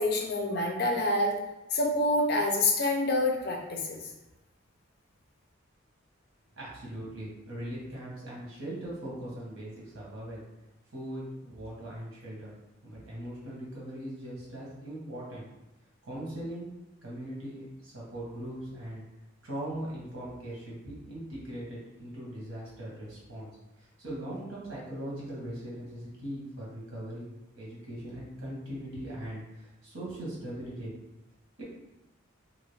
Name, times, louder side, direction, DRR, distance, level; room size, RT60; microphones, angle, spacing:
voice 1, 0.0-1.3 1.7-4.0, left 2 dB, 50° left, 1 dB, 0.5 m, -27 dB
voice 2, 6.6-10.4 10.9-12.5 12.8-15.5 16.0-16.7 17.0-19.0 19.4-23.5 23.8-27.3 27.5-30.9 31.6-31.7, right 1 dB, 90° right, -6 dB, 1.4 m, -40 dB
2.8 x 2.5 x 3.2 m, 0.95 s
head